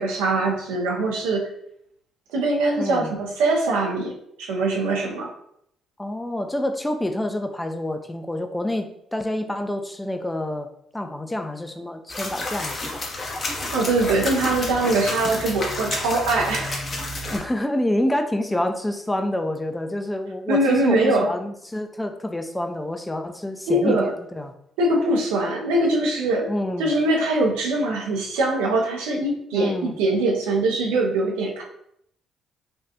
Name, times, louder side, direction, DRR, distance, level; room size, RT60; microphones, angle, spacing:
voice 1, 0.0-1.4 2.3-4.1 4.4-5.3 13.7-16.8 20.5-21.3 23.7-24.1 24.8-26.5 26.8-31.6, right 2 dB, 80° right, -1 dB, 0.6 m, -22 dB
voice 2, 2.8-3.1 6.0-10.7 10.9-13.1 17.3-24.5 26.5-26.9 29.5-30.0, left 1 dB, 15° left, 6 dB, 0.4 m, -27 dB
sound 1, 12.1-17.4, left 2 dB, 45° left, 0.8 m, -30 dB
3.4 x 2.4 x 2.8 m, 0.73 s
hypercardioid pair, 45°, 0 cm